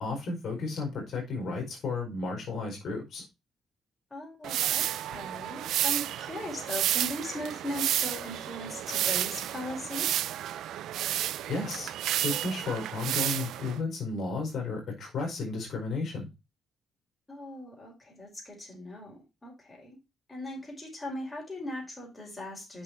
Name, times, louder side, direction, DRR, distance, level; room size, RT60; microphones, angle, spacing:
voice 1, 0.0-3.2 11.5-11.9 12.2-16.3, left 3 dB, 65° left, 1 dB, 4.7 m, -33 dB
voice 2, 4.1-10.3 17.3-20.0 20.3-22.8, left 1 dB, 20° left, -1 dB, 5.5 m, -39 dB
sound 1, 4.4-13.8, right 12 dB, 80° right, 0.6 m, -31 dB
7.7 x 6.5 x 4.3 m, 0.24 s
cardioid pair, 90°, 0 cm